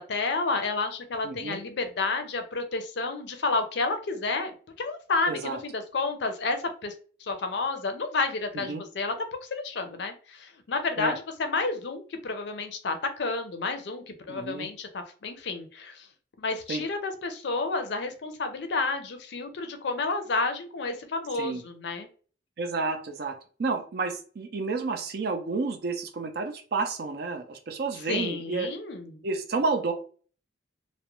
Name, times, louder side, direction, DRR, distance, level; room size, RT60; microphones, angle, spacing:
voice 1, 0.0-6.9 7.2-9.1 9.4-16.1 16.4-22.1 28.1-29.2, left 3 dB, 60° left, 7 dB, 0.4 m, -30 dB
voice 2, 1.2-1.6 5.3-5.6 8.5-8.8 11.0-11.2 14.3-14.7 16.7-16.8 21.4-21.6 22.6-28.7 29.2-29.9, right 3 dB, 50° right, 6 dB, 0.4 m, -30 dB
2.3 x 2.1 x 2.9 m, 0.41 s
head